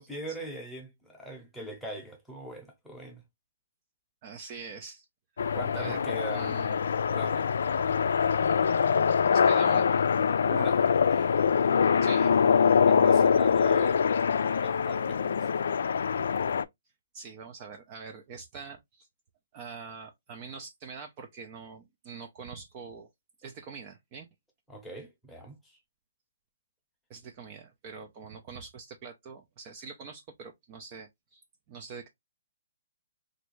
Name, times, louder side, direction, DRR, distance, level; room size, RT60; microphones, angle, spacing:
voice 1, 0.0-3.2 5.5-6.6 7.1-7.5 9.6-9.9 10.4-11.4 11.9-12.2 12.8-14.0 14.6-15.5 24.7-25.8, right 1 dB, ahead, 0.9 m, -41 dB
voice 2, 4.2-5.1 5.7-6.0 6.3-6.8 9.3-10.0 12.0-12.4 17.1-19.1 19.5-23.1 23.4-24.3 27.1-31.4 31.7-32.1, right 5 dB, 30° right, 0.5 m, -44 dB
sound 1, 5.4-16.6, left 6 dB, 65° left, 0.3 m, -24 dB
3.2 x 2.6 x 3.0 m
hypercardioid pair, 160°, 0 cm